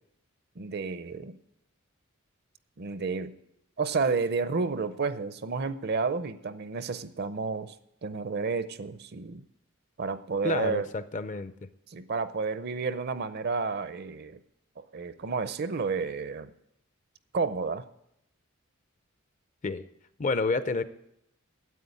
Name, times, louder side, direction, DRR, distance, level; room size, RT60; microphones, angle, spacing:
voice 1, 0.6-1.4 2.8-3.3 3.8-7.7 8.0-9.4 10.0-10.9 11.9-14.4 14.8-16.5 17.3-17.9, right 4 dB, 50° right, 13 dB, 0.6 m, -31 dB
voice 2, 10.4-11.5 19.6-19.8 20.2-20.8, left 3 dB, 35° left, 13 dB, 0.5 m, -29 dB
9.3 x 8.4 x 8.3 m, 0.78 s
head